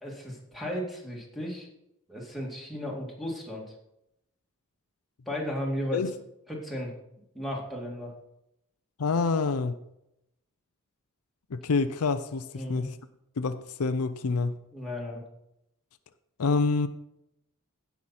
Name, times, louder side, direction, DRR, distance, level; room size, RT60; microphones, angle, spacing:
voice 1, 0.0-1.7 2.1-3.6 5.3-6.0 6.5-6.9 7.3-8.1 12.5-12.9 14.7-15.2, left 1 dB, ahead, -2 dB, 2.3 m, -34 dB
voice 2, 9.0-9.8 11.5-12.9 13.4-14.6 16.4-16.9, left 4 dB, 75° left, 11 dB, 0.5 m, -27 dB
16.0 x 5.8 x 4.2 m, 0.83 s
head